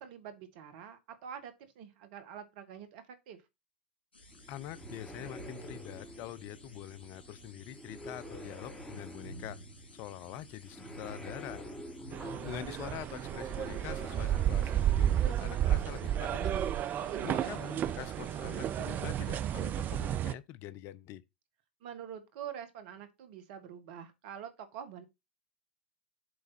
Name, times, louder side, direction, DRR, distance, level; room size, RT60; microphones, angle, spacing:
voice 1, 0.0-3.4 17.0-17.6 21.8-25.0, right 9 dB, 60° right, 1.6 m, -46 dB
sound 1, 4.1-20.2, left 2 dB, 85° left, 2.8 m, -58 dB
sound 2, 4.3-16.1, equal, 5° left, 2.3 m, -48 dB
voice 2, 4.5-9.6 9.9-11.7 12.4-16.6 16.9-21.2, left 13 dB, 50° left, 0.6 m, -45 dB
sound 3, 12.1-20.3, right 11 dB, 35° right, 0.5 m, -32 dB
7.7 x 3.5 x 5.6 m
hypercardioid pair, 90°, 6 cm